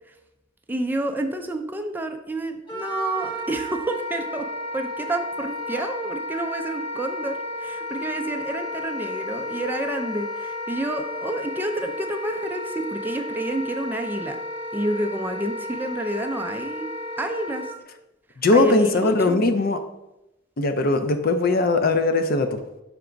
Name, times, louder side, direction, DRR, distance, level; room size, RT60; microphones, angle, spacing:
voice 1, 0.7-4.5 4.7-14.4 14.7-16.9 17.2-17.7 18.5-19.5, right 1 dB, 10° right, 4 dB, 0.4 m, -29 dB
Wind instrument woodwind instrument, 2.7-17.7, left 1 dB, 25° left, 1.2 m, -33 dB
voice 2, 18.4-19.8 20.6-22.6, left 2 dB, 50° left, 8 dB, 0.5 m, -20 dB
5.9 x 3.4 x 5.0 m, 0.92 s
head